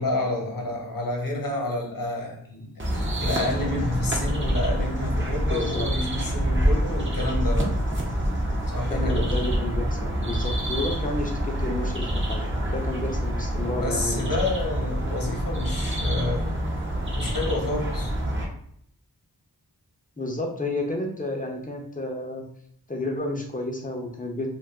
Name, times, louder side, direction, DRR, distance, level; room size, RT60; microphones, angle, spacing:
voice 1, 0.0-2.9 3.2-7.7 8.7-9.3 13.8-16.5 17.1-18.1, left 2 dB, 55° left, 0 dB, 0.9 m, -29 dB
sound 1, 2.8-18.4, equal, 30° right, 0.7 m, -26 dB
voice 2, 5.5-5.9 8.9-14.2 20.2-22.4 22.9-24.5, left 1 dB, 20° left, 1 dB, 0.6 m, -31 dB
2.4 x 2.3 x 3.5 m, 0.67 s
wide cardioid pair, 45°, 40 cm